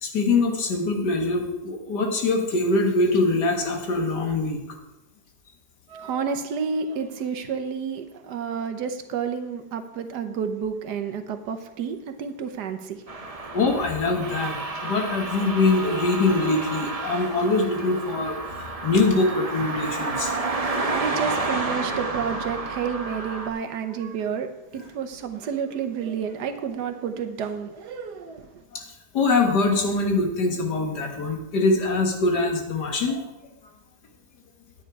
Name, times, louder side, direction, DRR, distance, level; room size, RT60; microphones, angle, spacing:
voice 1, 0.0-4.6 13.5-20.3 24.7-24.8 28.7-28.8 29.1-33.3, left 3 dB, 80° left, 3 dB, 2.1 m, -23 dB
voice 2, 5.9-13.0 20.6-24.5 24.7-28.5, right 6 dB, 80° right, 7 dB, 1.5 m, -30 dB
sound 1, 13.1-23.5, right 3 dB, 25° right, 0.9 m, -30 dB
9.8 x 9.5 x 4.8 m, 0.98 s
omnidirectional pair, 1.8 m